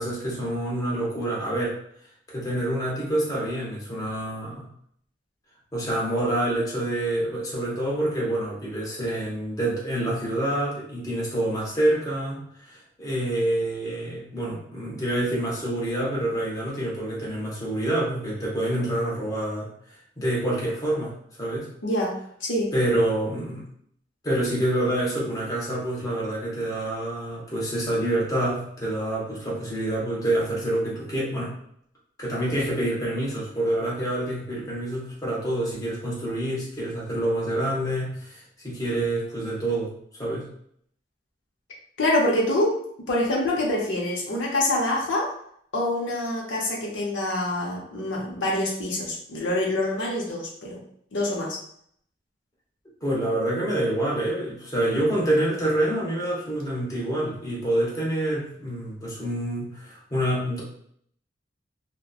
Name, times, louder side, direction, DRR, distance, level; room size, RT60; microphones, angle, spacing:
voice 1, 0.0-1.7 2.3-4.7 5.7-19.7 20.2-21.1 21.4-21.7 22.7-23.7 24.2-31.6 32.2-39.9 40.2-40.5 53.0-60.6, right 1 dB, 20° left, -5 dB, 0.8 m, -27 dB
voice 2, 21.8-22.1 22.4-22.7 42.0-42.8 43.1-45.3 45.7-50.8 51.1-51.6, left 1 dB, 85° left, -3 dB, 0.7 m, -25 dB
2.8 x 2.1 x 2.4 m, 0.67 s
head